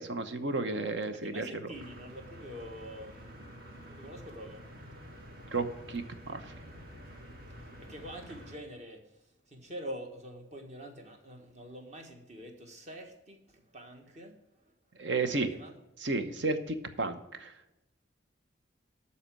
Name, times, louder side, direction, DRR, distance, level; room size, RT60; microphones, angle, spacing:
voice 1, 0.0-1.5 5.5-6.5 15.0-15.5 16.0-17.5, right 3 dB, 70° right, 8 dB, 0.9 m, -32 dB
voice 2, 1.1-3.4 3.8-4.6 7.5-14.7 15.3-15.7, equal, 35° right, 3 dB, 1.5 m, -46 dB
sound 1, 1.7-8.6, equal, 50° right, 1.7 m, -49 dB
12.5 x 4.3 x 7.5 m, 0.95 s
head